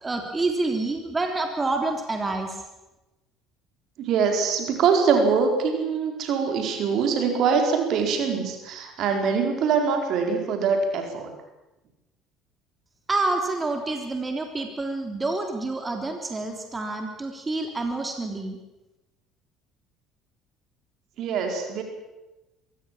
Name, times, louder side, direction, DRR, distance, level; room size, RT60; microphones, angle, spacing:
voice 1, 0.0-2.6 13.1-18.6, right 2 dB, 25° right, 4 dB, 3.4 m, -28 dB
voice 2, 4.0-11.3 21.2-21.8, right 5 dB, 60° right, 4 dB, 4.6 m, -23 dB
23.5 x 17.0 x 7.5 m, 1.0 s
hypercardioid pair, 60°, 0 cm